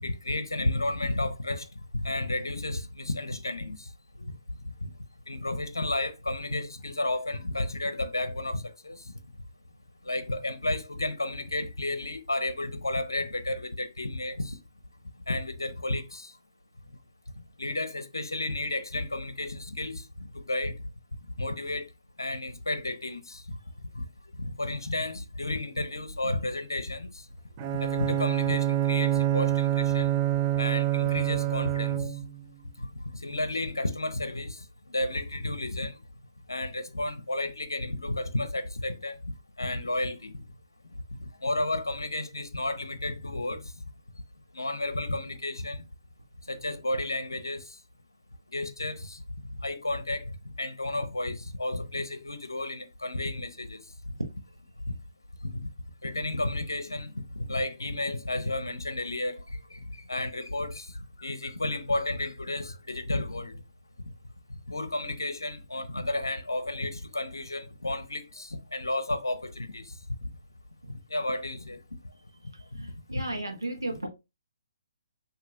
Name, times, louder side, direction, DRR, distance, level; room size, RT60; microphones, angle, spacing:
voice 1, 0.0-1.7 2.0-3.9 4.2-4.3 4.8-4.9 5.3-9.0 10.0-14.6 15.3-16.3 17.6-20.8 21.4-21.9 22.2-23.4 24.0-24.1 24.4-27.1 27.8-30.1 30.6-32.1 32.8-32.9 33.2-36.0 36.5-39.2 39.6-40.4 41.2-43.7 44.5-45.8 46.5-47.8 48.5-49.2 49.6-50.3 50.6-53.8 55.4-55.7 56.0-59.8 60.1-60.9 61.2-63.6 64.7-69.9 71.1-71.8 72.7-72.8, left 2 dB, 80° left, 0.8 m, -32 dB
Bowed string instrument, 27.6-32.4, right 13 dB, 25° right, 0.5 m, -26 dB
voice 2, 72.8-74.1, right 1 dB, 85° right, 1.1 m, -34 dB
7.4 x 2.9 x 2.3 m
figure-of-eight pair, 135°, 2 cm